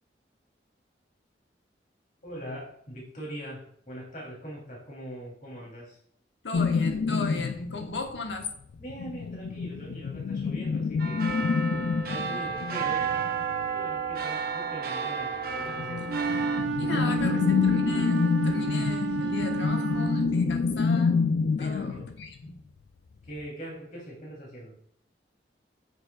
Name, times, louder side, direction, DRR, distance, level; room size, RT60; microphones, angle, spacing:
voice 1, 2.2-6.0 8.8-11.3 11.9-13.1 13.7-16.2 16.8-17.4 21.6-22.0 23.2-24.8, right 1 dB, 45° left, -4 dB, 3.2 m, -42 dB
voice 2, 6.4-8.5 16.8-21.2 21.6-22.6, left 3 dB, 85° left, 4 dB, 1.3 m, -36 dB
sound 1, 6.5-8.3 8.8-13.6 15.7-22.3, left 5 dB, 65° left, 0.3 m, -27 dB
sound 2, 11.0-16.6, right 6 dB, 55° right, 0.8 m, -32 dB
Wind instrument woodwind instrument, 16.0-20.6, right 4 dB, 80° right, 0.7 m, -31 dB
9.1 x 6.5 x 2.4 m, 0.67 s
head